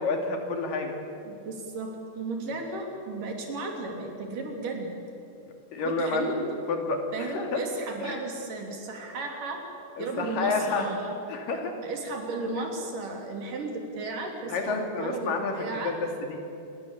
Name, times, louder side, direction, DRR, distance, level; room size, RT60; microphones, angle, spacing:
voice 1, 0.0-0.9 5.7-6.3 6.7-7.6 8.0-8.2 10.0-11.0 11.3-11.8 14.5-16.4, left 3 dB, 90° left, 3 dB, 4.4 m, -29 dB
voice 2, 1.3-4.9 5.8-6.4 7.1-9.6 10.0-11.1 11.8-16.0, right 2 dB, 75° right, 2 dB, 4.8 m, -34 dB
27.0 x 21.5 x 8.2 m, 2.8 s
omnidirectional pair, 3.8 m